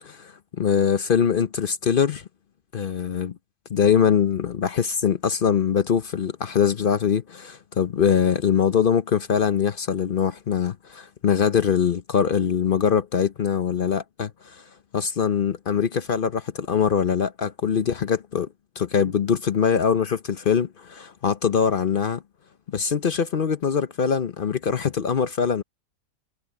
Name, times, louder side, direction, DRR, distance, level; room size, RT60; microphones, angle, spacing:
voice 1, 0.0-2.2 2.7-3.3 3.7-14.6 14.9-18.5 18.8-22.2 22.7-25.6, left 7 dB, 55° left, 0.6 m, -23 dB
omnidirectional pair, 1.8 m